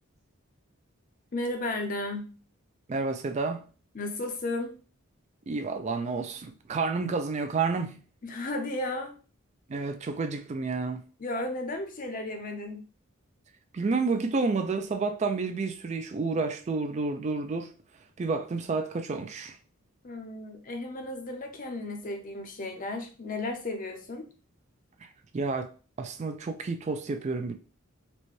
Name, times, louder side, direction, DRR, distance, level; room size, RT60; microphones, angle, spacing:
voice 1, 1.3-2.3 3.9-4.8 8.2-9.1 11.2-12.8 20.0-24.3, left 2 dB, 40° left, 0.5 m, -34 dB
voice 2, 2.9-3.7 5.5-8.0 9.7-11.0 13.7-17.7 18.2-19.6 25.0-25.1 25.3-25.7 26.0-27.5, right 4 dB, 30° right, 0.3 m, -30 dB
4.1 x 2.1 x 3.1 m
head